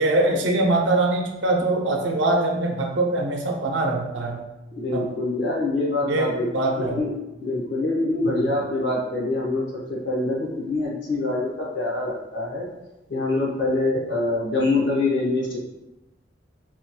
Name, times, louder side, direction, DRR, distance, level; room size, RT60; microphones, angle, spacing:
voice 1, 0.0-4.4 4.9-5.1 6.1-7.0 8.3-8.4, right 2 dB, 80° right, 1 dB, 0.6 m, -23 dB
voice 2, 4.8-6.5 6.8-7.1 7.4-12.7 13.1-15.6, left 2 dB, 75° left, -2 dB, 0.9 m, -25 dB
4.1 x 2.9 x 2.2 m, 0.98 s
head